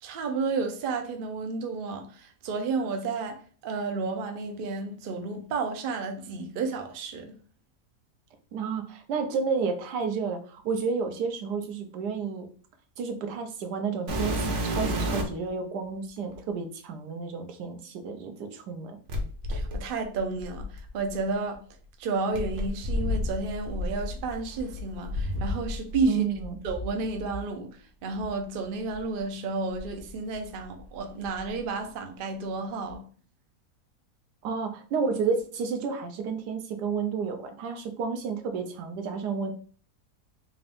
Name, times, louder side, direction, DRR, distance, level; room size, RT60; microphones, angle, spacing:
voice 1, 0.0-7.3 19.5-21.6 22.0-26.2 26.6-27.7 28.0-33.1, right 4 dB, 70° right, 0.5 m, -31 dB
voice 2, 8.5-12.5 13.0-19.0 26.1-26.6 34.4-39.5, right 5 dB, 85° right, 1.2 m, -31 dB
sound 1, 14.1-15.5 16.3-16.4 19.1-21.2 22.3-26.1 26.3-27.4 28.2-28.3 28.9-29.0 29.7-30.8 31.1-31.6 32.9-33.0, left 1 dB, 55° right, 1.0 m, -32 dB
3.7 x 2.5 x 3.4 m
omnidirectional pair, 1.7 m